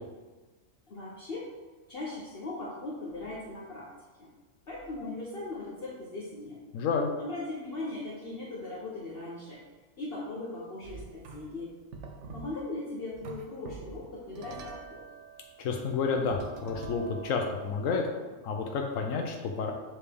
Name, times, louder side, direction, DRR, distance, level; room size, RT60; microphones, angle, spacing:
voice 1, 0.9-1.5 1.9-3.9 4.2-4.3 4.7-6.6 7.2-9.7 10.0-11.7 12.3-15.0, left 2 dB, 50° left, -5 dB, 1.0 m, -39 dB
voice 2, 6.7-7.1 15.6-18.1 18.4-19.7, left 5 dB, 85° left, 2 dB, 1.1 m, -30 dB
sound 1, 10.8-11.7 11.9-12.6 13.1-18.0, right 4 dB, 65° right, 0.9 m, -46 dB
7.0 x 4.3 x 3.4 m, 1.3 s
omnidirectional pair, 1.4 m